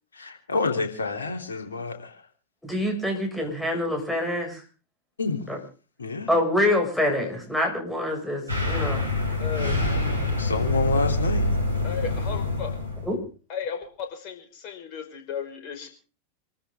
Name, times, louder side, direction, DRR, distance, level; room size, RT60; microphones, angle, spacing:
voice 1, 0.1-2.2 5.2-5.5 6.0-6.3 10.3-11.5 11.7-11.8, left 4 dB, 70° left, 4 dB, 3.3 m, -28 dB
voice 2, 2.6-4.6 5.5-5.6 6.3-9.1 13.1-13.2, left 1 dB, 5° left, 2 dB, 6.2 m, -26 dB
sound 1, 8.5-13.2, left 2 dB, 80° right, 5.7 m, -26 dB
voice 3, 9.4-9.9 11.8-12.7 13.5-15.9, left 7 dB, 40° left, 4 dB, 5.2 m, -34 dB
27.0 x 14.0 x 3.7 m, 0.37 s
figure-of-eight pair, 90°, 0 cm